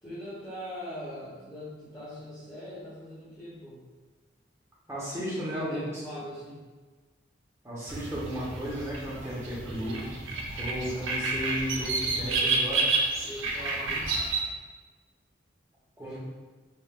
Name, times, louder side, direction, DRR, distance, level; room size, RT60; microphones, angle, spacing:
voice 1, 0.0-3.9 5.3-6.7 13.2-14.1 16.0-16.2, equal, 15° left, -14 dB, 1.0 m, -41 dB
voice 2, 4.9-5.8 7.6-10.2 10.5-12.9 16.0-16.2, equal, 15° right, -7 dB, 0.9 m, -34 dB
sound 1, 7.9-14.4, right 3 dB, 85° right, 0.6 m, -30 dB
5.4 x 2.5 x 2.4 m, 1.3 s
head